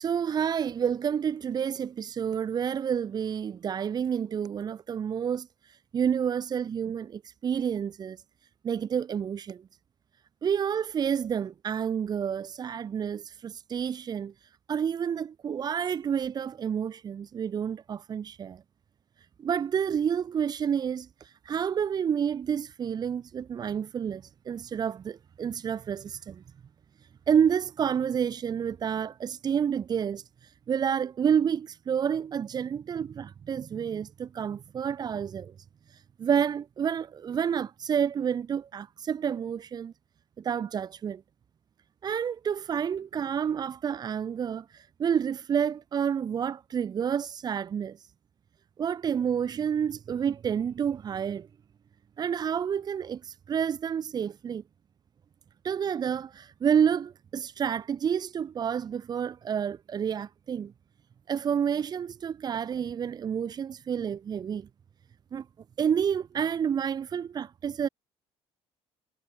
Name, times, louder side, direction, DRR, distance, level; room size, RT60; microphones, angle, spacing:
voice 1, 0.0-5.5 5.9-8.2 8.6-9.6 10.4-14.3 14.7-18.6 19.4-21.1 21.5-26.4 27.3-30.2 30.7-35.5 36.2-39.9 40.4-41.2 42.0-44.6 45.0-48.0 48.8-51.5 52.2-54.6 55.6-60.7 61.3-64.7 65.3-65.4 65.8-67.9, right 8 dB, 35° right, 4.4 m, -29 dB
cardioid pair, 140°, 11 cm